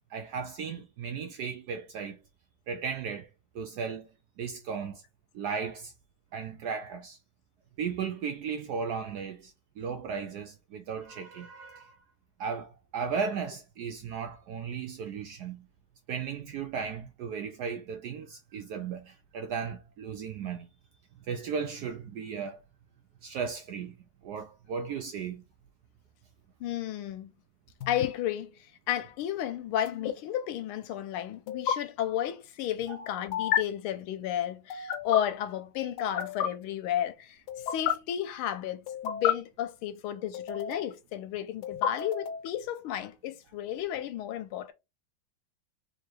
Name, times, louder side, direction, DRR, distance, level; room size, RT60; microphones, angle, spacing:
voice 1, 0.1-2.2 2.7-3.3 3.5-4.1 4.4-5.0 5.3-5.9 6.3-7.2 7.8-12.0 12.4-15.7 16.1-20.7 21.3-22.6 23.2-24.0 24.2-25.4 32.9-33.1, right 6 dB, 85° right, 0.8 m, -36 dB
voice 2, 26.6-27.3 27.9-28.6 28.9-37.4 37.7-44.7, left 11 dB, 90° left, 1.5 m, -33 dB
sound 1, 27.8-28.1 29.8-30.1 31.5-31.7 33.3-33.6 34.7-35.2 36.0-36.5 37.5-37.9 38.9-39.3 40.3-40.9 41.6-42.5, left 9 dB, 70° left, 1.0 m, -31 dB
3.7 x 3.2 x 3.1 m
omnidirectional pair, 2.3 m